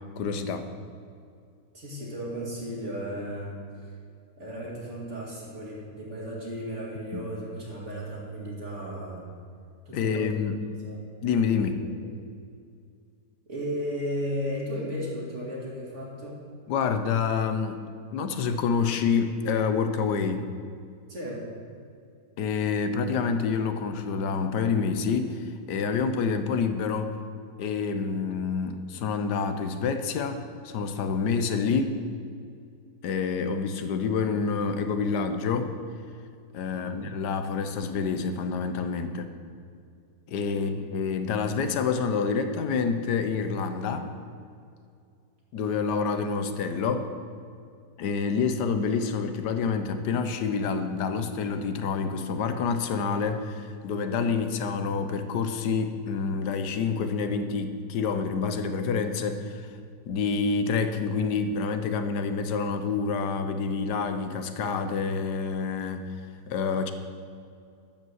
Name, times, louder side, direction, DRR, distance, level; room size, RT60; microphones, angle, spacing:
voice 1, 0.2-0.7 7.1-7.2 9.9-10.6 11.2-11.9 16.7-17.8 18.1-20.5 22.4-27.1 27.6-32.0 33.0-35.8 36.5-39.3 40.3-44.1 45.5-47.1 48.0-59.8 60.1-66.1 66.5-66.9, left 5 dB, 75° left, 8 dB, 1.3 m, -27 dB
voice 2, 1.7-3.9 4.4-9.2 9.9-10.4 10.8-11.0 11.8-12.1 13.5-16.4 21.1-21.5 36.7-37.0 40.5-40.8, equal, 45° right, -4 dB, 2.5 m, -35 dB
12.0 x 5.1 x 7.9 m, 2.3 s
omnidirectional pair, 1.8 m